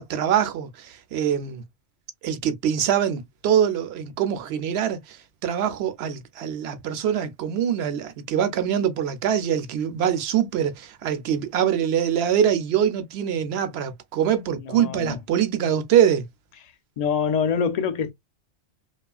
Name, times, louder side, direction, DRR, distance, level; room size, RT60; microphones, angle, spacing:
voice 1, 0.0-1.6 2.2-16.2, right 9 dB, 65° right, 0.8 m, -24 dB
voice 2, 14.6-15.2 17.0-18.1, left 7 dB, 60° left, 0.4 m, -25 dB
3.1 x 2.3 x 2.2 m
omnidirectional pair, 1.2 m